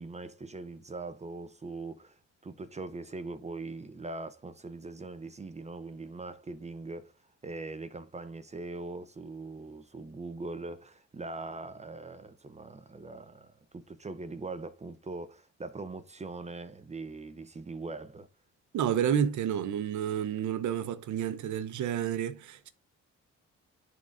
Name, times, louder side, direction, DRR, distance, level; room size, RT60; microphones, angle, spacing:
voice 1, 0.0-7.1 7.4-18.3, right 3 dB, 20° right, 0.7 m, -41 dB
voice 2, 18.7-22.7, right 9 dB, 75° right, 0.9 m, -30 dB
10.5 x 4.0 x 2.6 m
cardioid pair, 90°, 30 cm